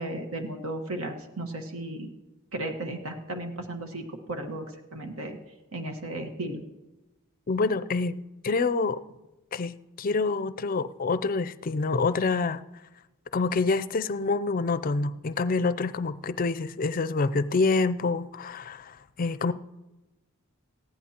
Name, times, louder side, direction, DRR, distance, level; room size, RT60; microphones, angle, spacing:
voice 1, 0.0-2.1 2.5-5.4 5.7-6.6, right 1 dB, 70° right, 5 dB, 1.4 m, -35 dB
voice 2, 7.5-9.0 9.5-12.6 13.3-19.5, left 3 dB, 40° left, 14 dB, 0.4 m, -27 dB
19.5 x 15.0 x 2.9 m, 1.1 s
head